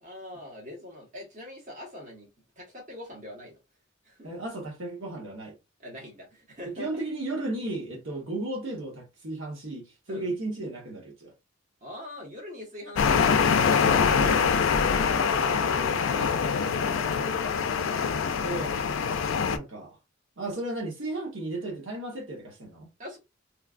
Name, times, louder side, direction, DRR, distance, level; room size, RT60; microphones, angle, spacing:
voice 1, 0.0-2.3 2.6-3.6 4.0-4.3 5.8-7.0 10.1-10.3 11.8-13.7 14.8-17.5 23.0-23.2, left 1 dB, 40° right, 1.1 m, -42 dB
voice 2, 4.2-5.5 6.6-11.3 14.2-14.6 17.3-17.4 18.4-18.8 19.5-20.0 20.4-22.9, right 2 dB, 75° right, 1.0 m, -34 dB
sound 1, 13.0-19.6, left 6 dB, 75° left, 0.4 m, -24 dB
3.1 x 2.3 x 2.4 m
head